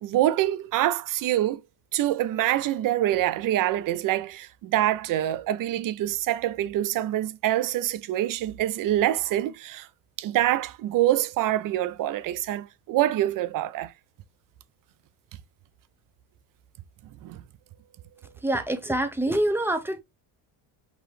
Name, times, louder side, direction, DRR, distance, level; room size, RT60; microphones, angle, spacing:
voice 1, 0.0-1.6 1.9-9.9 10.2-13.9 17.2-17.4, right 13 dB, 50° right, 0.5 m, -25 dB
voice 2, 18.4-20.0, right 1 dB, 5° right, 0.8 m, -25 dB
5.0 x 3.0 x 3.1 m
cardioid pair, 115°, 45 cm